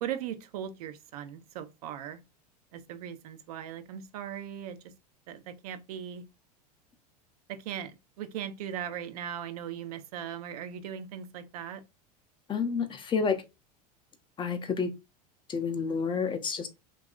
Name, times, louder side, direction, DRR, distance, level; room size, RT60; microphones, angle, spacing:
voice 1, 0.0-2.2 2.7-4.9 5.3-6.2 7.5-11.8, right 9 dB, 70° right, 0.5 m, -39 dB
voice 2, 12.5-13.4 14.4-14.9 15.5-16.7, left 5 dB, 25° left, 0.5 m, -29 dB
2.7 x 2.3 x 2.3 m
hypercardioid pair, 85°, 20 cm